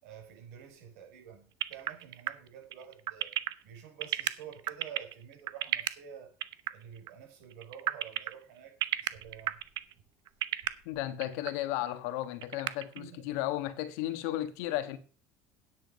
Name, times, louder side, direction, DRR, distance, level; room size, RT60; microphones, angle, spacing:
voice 1, 0.0-3.3 3.6-6.3 6.7-9.6 13.0-13.2, right 8 dB, 80° right, 5.9 m, -49 dB
sound 1, 1.6-5.9 6.4-6.7 7.0-7.1 7.5-8.3 8.8-9.9 10.3-10.7 11.2-11.5 11.9-12.0 12.2-13.0, right 14 dB, 60° right, 0.8 m, -31 dB
voice 2, 10.8-15.0, left 14 dB, 80° left, 1.5 m, -34 dB
9.9 x 7.6 x 5.4 m
supercardioid pair, 100°, 8 cm